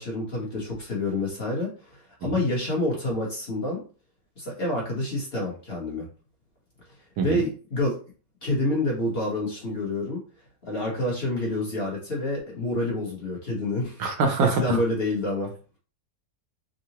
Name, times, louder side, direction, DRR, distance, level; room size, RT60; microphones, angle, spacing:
voice 1, 0.0-3.8 4.4-6.1 7.2-8.0 8.4-10.2 10.7-14.0 14.4-15.5, left 1 dB, 45° left, -3 dB, 1.0 m, -28 dB
voice 2, 14.0-14.8, right 4 dB, 75° right, 4 dB, 1.2 m, -24 dB
3.7 x 2.0 x 2.8 m, 0.37 s
omnidirectional pair, 1.8 m